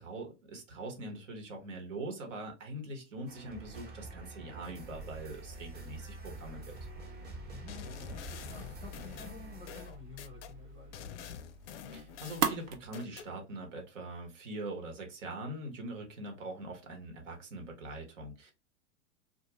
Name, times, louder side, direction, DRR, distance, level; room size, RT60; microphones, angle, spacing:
voice 1, 0.0-6.6 11.9-18.5, right 2 dB, 75° right, 1.1 m, -42 dB
sound 1, 3.3-9.9, right 2 dB, 25° right, 0.9 m, -48 dB
sound 2, 5.0-12.8, right 6 dB, 60° right, 0.7 m, -41 dB
voice 2, 7.4-11.4, left 6 dB, 15° left, 0.5 m, -52 dB
sound 3, 7.7-10.5 10.9-13.3, left 9 dB, 70° left, 0.5 m, -47 dB
2.4 x 2.3 x 3.0 m
hypercardioid pair, 105°, 38 cm